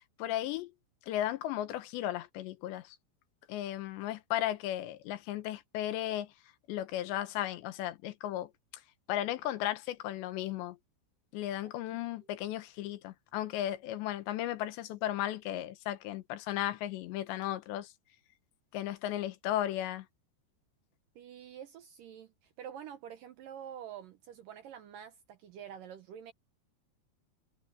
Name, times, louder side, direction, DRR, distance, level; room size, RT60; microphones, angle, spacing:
voice 1, 0.2-0.7 1.1-3.0 3.5-6.3 6.7-8.5 9.1-10.8 11.3-17.9 18.7-20.1, left 13 dB, 85° left, 3.4 m, -35 dB
voice 2, 21.2-26.3, right 9 dB, 70° right, 2.1 m, -47 dB
omnidirectional pair, 5.0 m